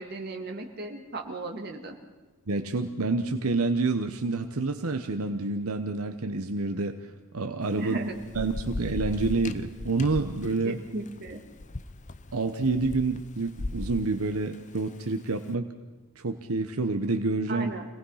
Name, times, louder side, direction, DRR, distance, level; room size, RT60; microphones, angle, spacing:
voice 1, 0.0-2.0 7.8-8.2 10.6-11.4 17.5-17.9, right 2 dB, 45° right, 3 dB, 2.2 m, -35 dB
voice 2, 2.5-7.0 7.3-8.0 8.3-10.8 12.3-15.7 16.2-17.7, right 3 dB, 80° right, 7 dB, 1.0 m, -28 dB
Thunder / Rain, 7.6-15.3, left 2 dB, 35° left, 0.7 m, -38 dB
26.0 x 18.0 x 5.7 m, 1.2 s
head